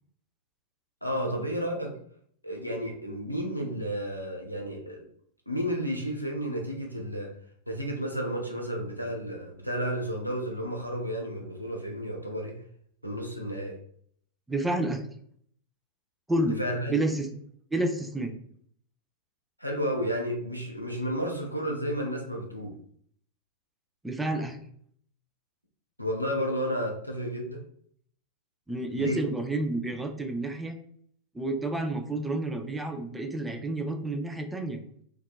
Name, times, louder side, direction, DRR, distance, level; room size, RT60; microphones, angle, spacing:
voice 1, 1.0-1.9 2.4-5.1 5.5-7.3 7.7-12.6 13.0-13.8 16.4-17.0 19.6-22.7 26.0-27.6 28.9-29.2, equal, 90° left, 1 dB, 0.5 m, -32 dB
voice 2, 14.5-15.0 16.3-16.6 16.9-17.3 17.7-18.3 24.0-24.6 28.7-30.7 31.3-34.8, right 2 dB, 5° right, 4 dB, 0.4 m, -29 dB
2.7 x 2.3 x 2.3 m, 0.63 s
figure-of-eight pair, 90°, 0 cm